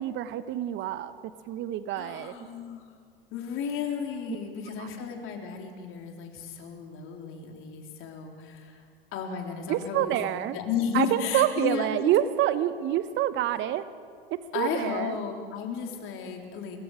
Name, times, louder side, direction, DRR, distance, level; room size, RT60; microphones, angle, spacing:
voice 1, 0.0-2.4 4.8-4.9 9.7-10.6 10.9-13.8 14.3-15.2, right 12 dB, 40° right, 13 dB, 0.9 m, -27 dB
voice 2, 1.9-2.9 3.3-8.8 9.1-10.2 10.5-12.1 14.5-16.8, left 7 dB, 45° left, 2 dB, 3.7 m, -34 dB
24.5 x 22.0 x 4.9 m, 2.2 s
hypercardioid pair, 90°, 30 cm